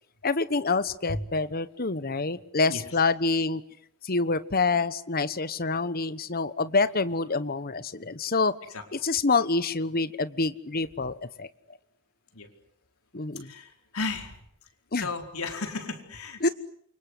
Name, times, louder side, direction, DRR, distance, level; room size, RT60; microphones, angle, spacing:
voice 1, 0.2-3.6 4.0-8.5 8.9-11.5 13.1-13.5 14.9-15.1 16.4-16.5, left 3 dB, 45° left, 14 dB, 1.2 m, -27 dB
voice 2, 13.3-14.4 14.9-16.5, left 3 dB, 80° left, 5 dB, 4.7 m, -34 dB
28.5 x 25.0 x 8.1 m, 0.69 s
head